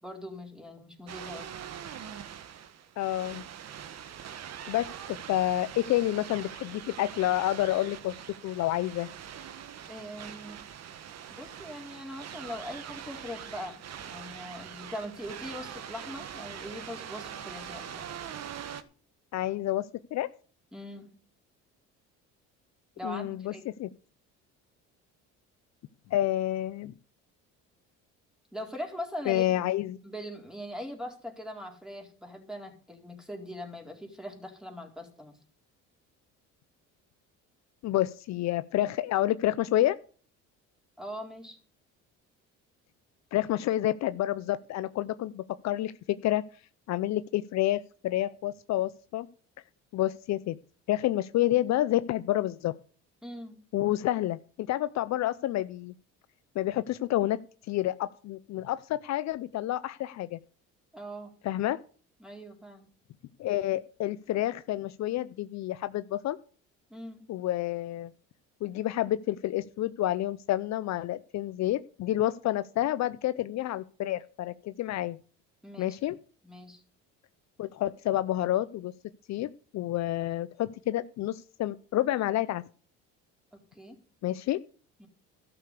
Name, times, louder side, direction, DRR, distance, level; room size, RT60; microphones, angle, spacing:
voice 1, 0.0-1.5 9.9-10.6 11.3-18.2 20.7-21.1 23.0-23.6 28.5-29.6 30.0-35.4 41.0-41.6 53.2-53.6 60.9-61.3 62.2-62.9 66.9-67.3 75.6-76.0 76.4-76.8 83.5-84.0 85.0-85.1, equal, ahead, 3 dB, 4.2 m, -41 dB
sound 1, 1.1-18.8, right 9 dB, 55° right, 1.4 m, -43 dB
voice 2, 3.0-3.4 4.7-4.9 5.3-8.1 8.4-9.1 19.3-20.3 23.0-23.5 23.8-23.9 26.1-26.9 29.3-30.0 37.8-40.0 43.3-46.4 46.9-49.3 49.9-50.6 50.9-52.7 53.7-55.9 56.6-57.4 57.7-60.4 61.4-61.8 63.4-66.4 67.3-68.1 68.6-75.2 75.8-76.2 77.6-78.9 79.3-79.5 79.7-82.6 84.2-84.6, left 14 dB, 55° left, 14 dB, 0.6 m, -29 dB
13.0 x 6.9 x 6.7 m, 0.41 s
supercardioid pair, 85°, 32 cm